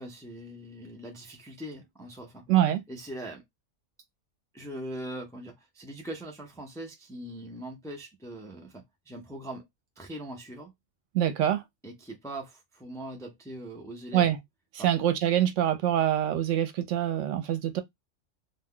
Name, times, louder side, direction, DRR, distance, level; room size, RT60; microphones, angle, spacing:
voice 1, 0.0-2.5 2.9-3.4 4.5-9.7 10.0-10.7 11.8-14.4 14.8-14.9, right 1 dB, 5° left, 0.4 m, -41 dB
voice 2, 2.5-2.8 11.1-11.6 14.1-14.4 14.7-17.8, right 11 dB, 80° right, 1.0 m, -25 dB
2.3 x 2.2 x 3.6 m
omnidirectional pair, 1.3 m